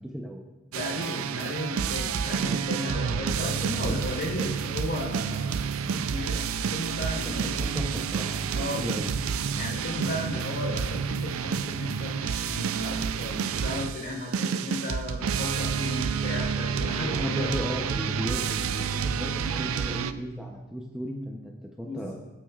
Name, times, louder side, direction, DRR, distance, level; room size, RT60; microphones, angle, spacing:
voice 1, 0.7-5.6 5.9-7.6 8.5-8.8 9.6-17.5 21.8-22.1, left 1 dB, 50° left, -2 dB, 3.7 m, -35 dB
sound 1, 0.7-20.1, right 6 dB, 80° right, 0.4 m, -29 dB
voice 2, 7.2-9.1 17.0-22.1, equal, 5° right, 0 dB, 0.7 m, -35 dB
18.0 x 8.9 x 2.4 m, 1.1 s
head